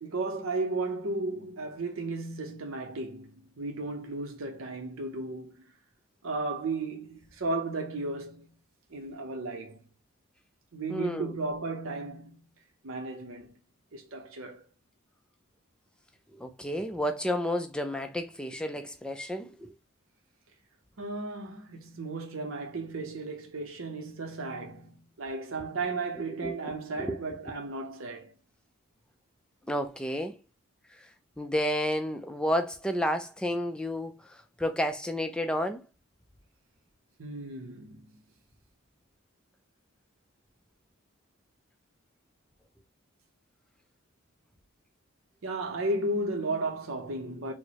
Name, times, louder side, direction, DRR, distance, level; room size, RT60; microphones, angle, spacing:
voice 1, 0.0-5.6 6.2-8.5 8.9-9.8 10.7-12.5 12.8-13.5 13.9-14.6 21.0-28.3 37.2-38.1 45.4-47.5, right 2 dB, 75° right, 0.7 m, -34 dB
voice 2, 10.9-11.3 16.3-19.7 26.3-26.6 27.0-27.2 29.7-30.4 30.9-31.1 31.4-35.8, equal, 5° left, 0.3 m, -31 dB
4.4 x 2.0 x 2.9 m
head